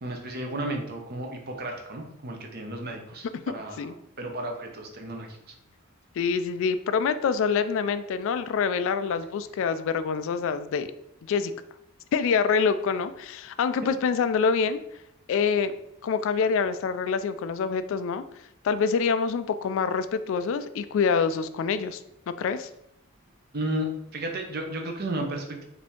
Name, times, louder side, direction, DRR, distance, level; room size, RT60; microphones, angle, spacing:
voice 1, 0.0-3.9 4.2-5.5 23.5-23.9 24.1-25.6, right 1 dB, 50° right, 3 dB, 0.8 m, -33 dB
voice 2, 6.2-10.9 11.2-11.5 12.1-14.8 15.3-15.7 16.0-18.2 18.6-22.0 22.3-22.7, left 6 dB, 65° left, 12 dB, 0.3 m, -26 dB
4.9 x 2.7 x 3.5 m, 0.82 s
head